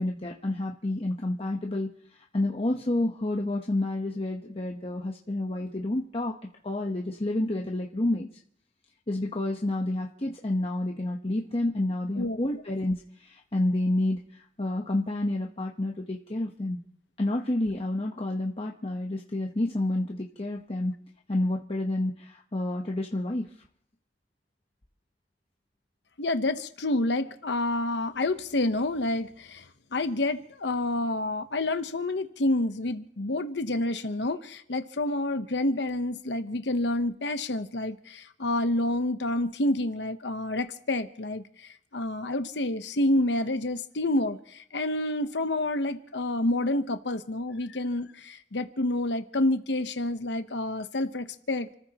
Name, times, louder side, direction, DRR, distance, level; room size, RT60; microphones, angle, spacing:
voice 1, 0.0-6.3 6.6-8.3 9.1-16.8 17.2-20.9 21.3-23.5, left 1 dB, 35° left, 0 dB, 1.1 m, -29 dB
voice 2, 26.2-29.6 29.9-51.7, left 1 dB, 75° left, 9 dB, 1.0 m, -28 dB
30.0 x 14.0 x 3.0 m, 0.71 s
head